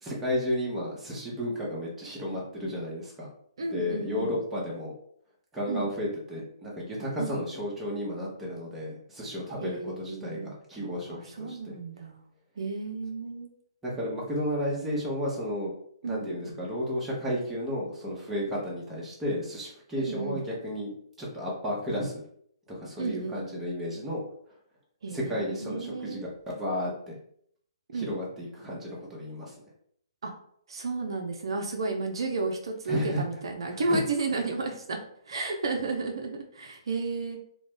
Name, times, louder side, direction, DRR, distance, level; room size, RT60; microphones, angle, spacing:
voice 1, 0.0-3.3 3.7-4.9 5.5-11.8 13.8-15.7 16.0-20.9 21.2-22.2 22.7-24.2 25.1-27.1 27.9-29.5 32.9-33.2 33.7-34.0, equal, 10° right, -5 dB, 0.9 m, -33 dB
voice 2, 3.6-4.4 5.7-5.9 7.2-7.3 9.6-10.5 11.1-12.3 12.6-13.5 16.0-16.3 20.0-20.4 23.0-23.4 25.0-26.2 27.9-28.1 30.2-30.3 30.7-35.0 35.3-37.4, right 3 dB, 65° right, 3 dB, 0.4 m, -32 dB
2.4 x 2.1 x 3.5 m, 0.66 s
figure-of-eight pair, 130°, 3 cm